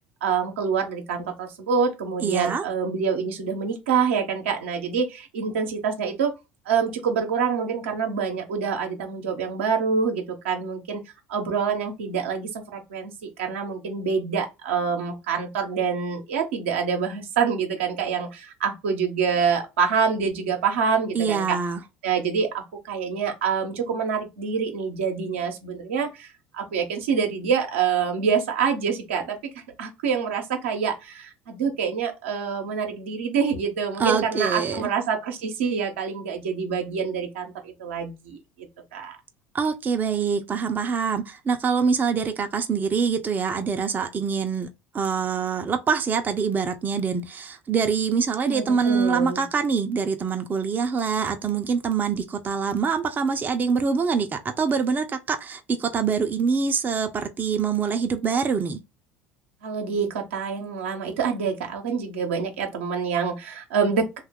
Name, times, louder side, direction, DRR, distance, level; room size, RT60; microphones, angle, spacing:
voice 1, 0.2-6.3 6.7-11.0 11.3-13.1 13.4-21.6 22.0-29.4 29.8-38.4 38.9-39.2 48.5-49.4 59.6-64.2, right 6 dB, 80° right, 0.7 m, -26 dB
voice 2, 2.2-2.6 21.1-21.8 34.0-34.9 39.5-44.7 44.9-58.8, right 5 dB, 30° right, 0.5 m, -25 dB
2.8 x 2.3 x 3.5 m
hypercardioid pair, 70°, 6 cm